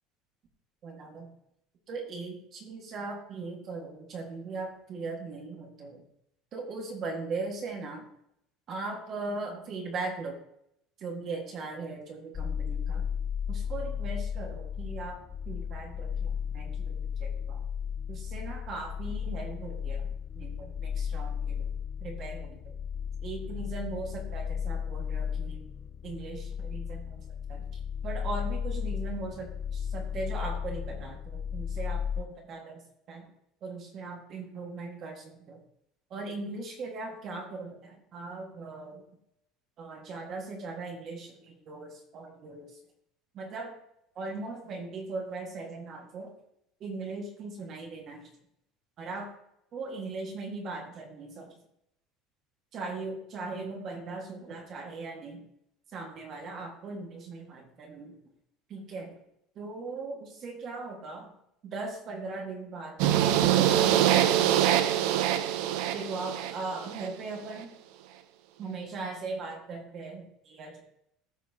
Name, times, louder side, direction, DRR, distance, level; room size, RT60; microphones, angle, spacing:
voice 1, 0.8-1.3 1.9-6.0 6.5-8.1 8.7-10.4 11.0-13.1 13.5-17.6 18.1-20.1 20.3-21.7 22.0-22.8 23.2-25.7 26.0-27.2 27.5-27.7 28.0-32.8 33.1-33.3 33.6-35.6 36.1-39.0 39.8-42.7 43.3-43.7 44.2-46.3 46.8-48.3 49.0-49.3 49.7-51.5 52.7-55.4 55.9-58.2 58.7-59.2 59.6-61.3 61.6-64.6 65.9-67.7 68.6-70.8, right 3 dB, 35° right, 2 dB, 1.7 m, -39 dB
sound 1, 12.3-32.2, left 7 dB, 25° left, 0.3 m, -34 dB
sound 2, 63.0-67.1, right 11 dB, 65° right, 0.7 m, -24 dB
14.0 x 5.7 x 2.8 m, 0.76 s
cardioid pair, 175°, 0 cm